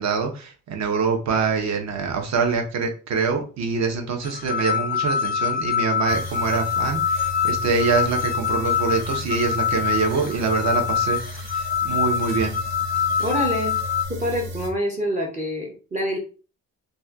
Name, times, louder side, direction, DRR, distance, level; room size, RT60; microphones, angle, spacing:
voice 1, 0.0-12.6, right 5 dB, 50° right, 3 dB, 0.8 m, -25 dB
sound 1, 4.2-14.0, left 8 dB, 30° left, 0.4 m, -25 dB
sound 2, 6.1-14.7, left 1 dB, 90° right, 0.9 m, -35 dB
voice 2, 13.2-13.7 14.1-16.2, equal, 20° right, -1 dB, 0.5 m, -26 dB
4.1 x 2.3 x 2.3 m, 0.35 s
cardioid pair, 160°, 35 cm